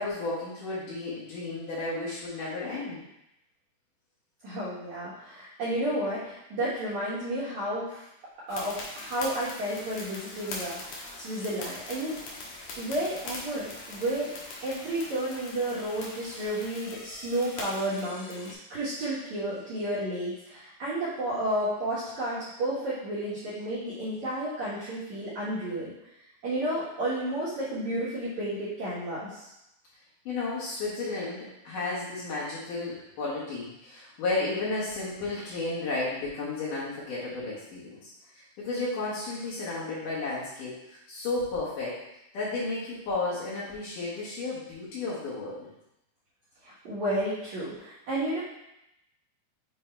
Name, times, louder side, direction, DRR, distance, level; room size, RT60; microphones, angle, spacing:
voice 1, 0.0-3.0 30.3-41.9 42.3-45.7, left 3 dB, 65° left, -7 dB, 2.1 m, -33 dB
voice 2, 4.4-8.0 8.5-12.2 12.8-14.3 14.6-25.9 26.4-29.4 46.6-48.4, right 1 dB, 70° right, -11 dB, 1.7 m, -32 dB
sound 1, 8.5-18.5, left 2 dB, 85° left, 1.7 m, -41 dB
7.6 x 2.9 x 4.4 m, 0.86 s
omnidirectional pair, 5.4 m